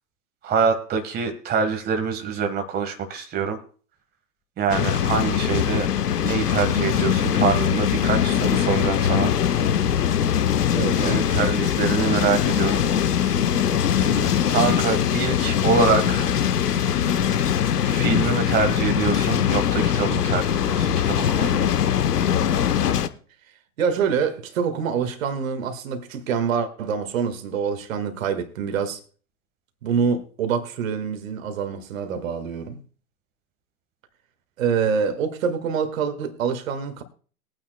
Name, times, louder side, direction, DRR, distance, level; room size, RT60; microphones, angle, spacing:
voice 1, 0.4-3.6 4.6-5.9 6.2-9.3 11.0-12.8 14.5-16.3 17.8-21.6, right 5 dB, 20° right, 1.5 m, -25 dB
sound 1, 4.7-23.1, left 9 dB, 75° left, 1.0 m, -22 dB
voice 2, 10.7-11.3 14.0-14.4 23.8-29.0 29.8-32.8 34.6-37.0, right 6 dB, 55° right, 1.8 m, -26 dB
21.5 x 9.2 x 2.2 m
figure-of-eight pair, 105°, 47 cm